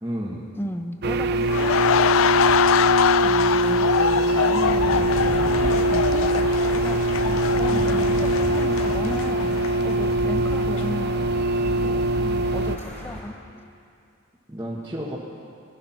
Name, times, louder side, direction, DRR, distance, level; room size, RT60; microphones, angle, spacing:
voice 1, 0.0-0.5 7.2-7.4 7.7-8.5 12.2-12.5 14.5-15.2, equal, 15° right, -7 dB, 1.5 m, -33 dB
voice 2, 0.6-1.8 3.2-7.2 7.5-11.3 11.8-12.1 12.5-13.5, equal, 10° left, 7 dB, 0.7 m, -35 dB
sound 1, 1.0-12.8, right 1 dB, 50° right, 0.5 m, -22 dB
sound 2, 1.4-10.3 10.6-10.8, left 8 dB, 80° left, 0.4 m, -24 dB
Aircraft / Engine, 4.6-13.2, equal, 35° left, 3.6 m, -33 dB
19.5 x 12.0 x 5.9 m, 2.4 s
head